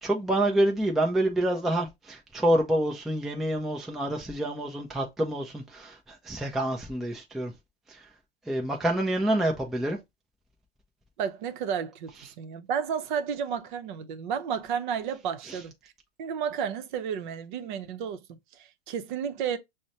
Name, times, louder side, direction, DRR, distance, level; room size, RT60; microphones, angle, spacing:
voice 1, 0.0-7.5 7.9-8.1 8.5-10.0 15.5-15.6, right 1 dB, ahead, 0.4 m, -27 dB
voice 2, 11.2-15.9 16.2-19.6, right 7 dB, 50° right, 0.7 m, -32 dB
6.1 x 2.1 x 2.7 m
hypercardioid pair, 120°, 31 cm